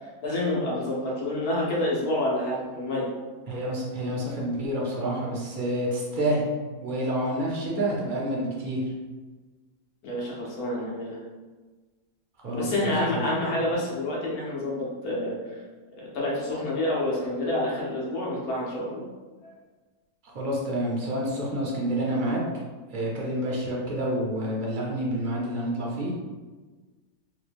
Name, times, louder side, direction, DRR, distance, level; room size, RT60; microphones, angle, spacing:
voice 1, 0.2-3.1 10.0-11.2 12.5-15.4 16.0-19.0 19.4-19.5, left 1 dB, 90° left, -5 dB, 1.4 m, -28 dB
voice 2, 3.5-6.5 6.8-8.8 12.4-13.4 20.3-22.4 22.9-26.1, right 1 dB, 40° right, -4 dB, 0.8 m, -28 dB
3.3 x 2.2 x 3.4 m, 1.3 s
omnidirectional pair, 1.5 m